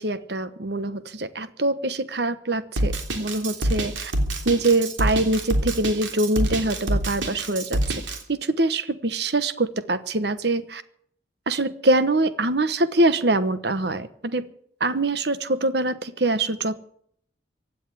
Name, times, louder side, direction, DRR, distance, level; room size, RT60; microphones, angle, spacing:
voice 1, 0.0-4.1 4.4-7.8 8.3-10.8 11.5-14.4 14.8-16.8, right 2 dB, 60° right, 13 dB, 1.1 m, -24 dB
Drum kit, 2.8-8.2, right 1 dB, 90° right, 3.2 m, -25 dB
16.0 x 9.3 x 9.7 m, 0.64 s
head